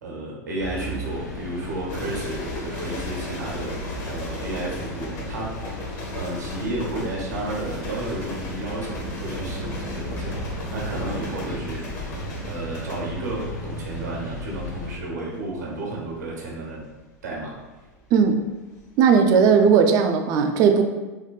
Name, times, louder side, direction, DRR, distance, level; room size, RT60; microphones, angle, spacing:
voice 1, 0.0-5.6 6.1-12.1 12.5-16.9 17.2-17.6, right 1 dB, 75° right, -2 dB, 0.8 m, -32 dB
sound 1, 0.6-15.0, left 1 dB, 85° left, 0.5 m, -35 dB
sound 2, 1.9-19.1 19.4-19.8, left 1 dB, 40° left, 0.8 m, -37 dB
voice 2, 19.0-20.8, right 6 dB, 45° right, 6 dB, 0.3 m, -17 dB
3.5 x 2.2 x 2.3 m, 1.2 s
hypercardioid pair, 90°, 9 cm